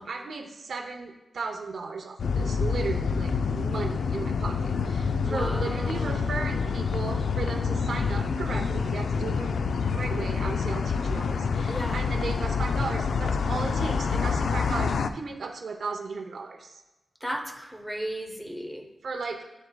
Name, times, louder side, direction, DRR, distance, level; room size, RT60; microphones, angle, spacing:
voice 1, 0.0-9.6 9.9-16.8 19.0-19.5, right 4 dB, 65° right, 3 dB, 0.6 m, -35 dB
sound 1, 2.2-15.1, left 5 dB, 70° left, 0.3 m, -27 dB
voice 2, 5.2-6.3 11.7-12.0 17.2-18.9, equal, ahead, 5 dB, 0.6 m, -35 dB
7.9 x 7.4 x 2.2 m, 1.0 s
wide cardioid pair, 180°, 0 cm